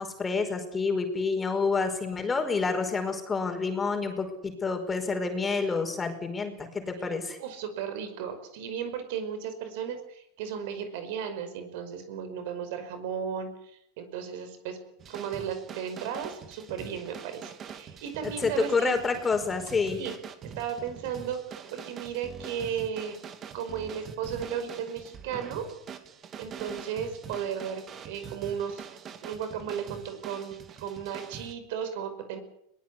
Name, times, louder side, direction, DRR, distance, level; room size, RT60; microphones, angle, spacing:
voice 1, 0.0-7.4 18.2-20.0, left 4 dB, 15° left, 5 dB, 5.1 m, -28 dB
voice 2, 7.4-14.8 15.1-19.0 20.0-20.1 20.4-23.2 23.5-25.7 26.4-28.9 29.2-32.4, right 8 dB, 65° right, 9 dB, 5.3 m, -35 dB
sound 1, 15.0-31.5, right 7 dB, 30° right, 2.6 m, -44 dB
22.0 x 20.0 x 8.5 m, 0.76 s
supercardioid pair, 125°, 0 cm